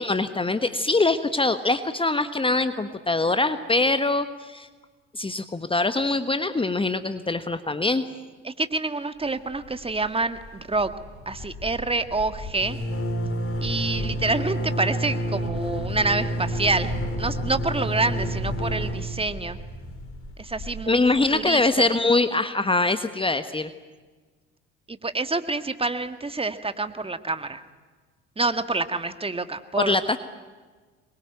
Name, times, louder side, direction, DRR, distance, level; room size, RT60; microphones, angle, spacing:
voice 1, 0.0-4.7 5.1-8.0 20.9-23.7 29.8-30.2, left 2 dB, 15° left, 10 dB, 1.3 m, -23 dB
voice 2, 8.4-10.9 11.2-12.8 13.6-16.9 17.2-19.6 20.4-21.0 21.3-21.9 24.9-27.6 28.4-30.0, right 3 dB, 15° right, 10 dB, 1.8 m, -27 dB
sound 1, 9.5-10.1 10.4-10.5 10.7-21.4, equal, 40° left, 4.8 m, -30 dB
26.0 x 22.5 x 9.3 m, 1.4 s
hypercardioid pair, 60°, 35 cm